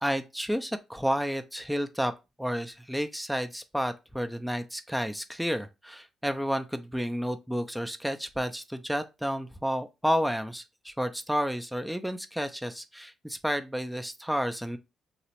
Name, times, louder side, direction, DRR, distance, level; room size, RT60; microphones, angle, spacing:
voice 1, 0.0-2.1 2.4-14.8, equal, ahead, 0.3 m, -31 dB
2.8 x 2.0 x 2.9 m
cardioid pair, 90°, 0 cm